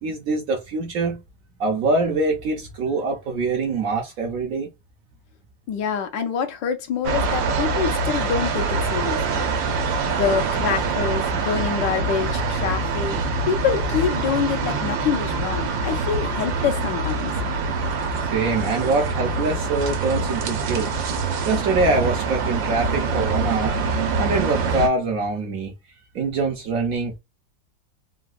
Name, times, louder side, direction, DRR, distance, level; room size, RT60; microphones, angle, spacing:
voice 1, 0.0-1.2 1.6-4.7 18.2-20.9 21.5-23.8 24.2-25.7 26.1-27.1, right 3 dB, 65° right, 0.9 m, -24 dB
voice 2, 5.7-9.5 10.1-13.2 13.5-17.3, left 7 dB, 80° left, 1.4 m, -26 dB
sound 1, 7.0-24.9, right 4 dB, 85° right, 1.4 m, -25 dB
3.8 x 2.2 x 2.4 m
omnidirectional pair, 2.0 m